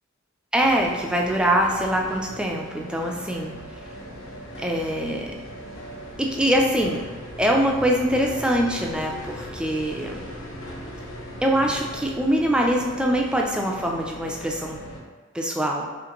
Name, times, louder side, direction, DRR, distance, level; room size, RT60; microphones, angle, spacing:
voice 1, 0.5-3.5 4.6-5.3 6.2-7.0 7.4-10.2 11.4-14.8 15.3-15.9, equal, 5° right, 0 dB, 0.3 m, -23 dB
sound 1, 0.6-15.0, equal, 85° left, 0.8 m, -39 dB
5.0 x 2.5 x 2.9 m, 1.3 s
head